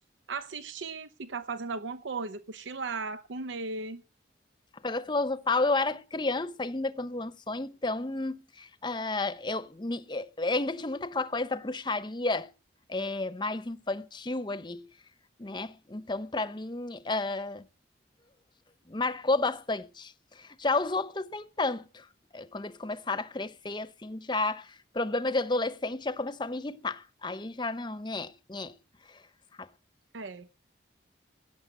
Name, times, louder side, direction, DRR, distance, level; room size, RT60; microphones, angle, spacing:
voice 1, 0.3-4.0 30.1-30.5, right 4 dB, 85° right, 0.7 m, -36 dB
voice 2, 4.8-12.5 12.9-14.9 15.4-17.7 18.9-20.1 20.4-22.1 22.3-28.7 29.6-29.7, left 3 dB, 25° left, 0.8 m, -31 dB
17.0 x 8.0 x 7.9 m
head